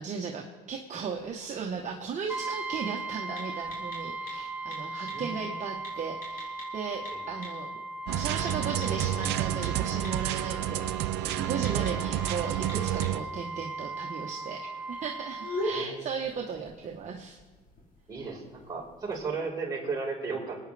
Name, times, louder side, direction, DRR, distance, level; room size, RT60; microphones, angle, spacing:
voice 1, 0.0-7.7 8.1-17.4, right 6 dB, 45° right, 1 dB, 1.2 m, -36 dB
sound 1, 1.0-19.2, left 1 dB, 60° left, 4.9 m, -45 dB
Brass instrument, 2.3-15.9, right 2 dB, 5° right, 0.6 m, -38 dB
voice 2, 5.1-5.4 7.1-7.2 11.8-11.9 15.6-16.0 18.1-20.6, right 4 dB, 25° right, -4 dB, 4.9 m, -35 dB
sound 2, 8.1-13.2, right 13 dB, 80° right, 0.5 m, -30 dB
26.5 x 9.5 x 3.4 m, 1.3 s
cardioid pair, 110°, 17 cm